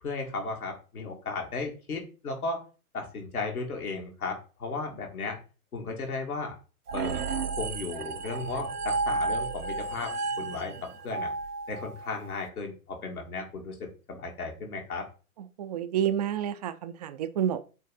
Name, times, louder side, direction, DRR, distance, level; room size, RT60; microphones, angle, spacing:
voice 1, 0.0-2.6 2.9-5.4 5.7-6.5 6.9-7.3 7.6-10.7 11.0-11.3 11.7-15.1, left 3 dB, 70° left, 1 dB, 2.2 m, -35 dB
sound 1, 6.9-12.3, right 4 dB, 80° right, 0.8 m, -32 dB
voice 2, 15.4-17.6, right 10 dB, 30° right, 11 dB, 0.4 m, -29 dB
7.7 x 3.2 x 4.0 m, 0.35 s
figure-of-eight pair, 105°, 45 cm